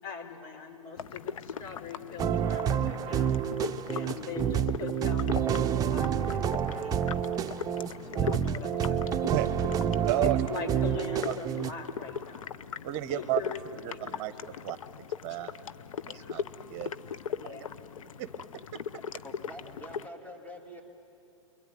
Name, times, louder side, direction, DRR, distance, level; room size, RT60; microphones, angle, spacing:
voice 1, 0.0-3.4 3.9-7.1 8.0-9.4 10.2-12.6 13.1-14.6 16.0-16.3 17.4-17.8, left 5 dB, 55° left, 1 dB, 5.5 m, -42 dB
sound 1, 1.0-20.1, left 7 dB, 75° left, 0.8 m, -40 dB
sound 2, 2.2-11.7, right 8 dB, 20° right, 0.7 m, -29 dB
voice 2, 10.0-10.4 11.2-11.3 12.8-13.4 13.8-15.5 16.1-16.9 17.4-17.5 18.2-18.3, right 16 dB, 40° right, 11 dB, 1.0 m, -32 dB
voice 3, 19.2-20.8, equal, 10° left, 2 dB, 2.5 m, -45 dB
26.5 x 23.0 x 9.5 m, 2.8 s
hypercardioid pair, 120°, 17 cm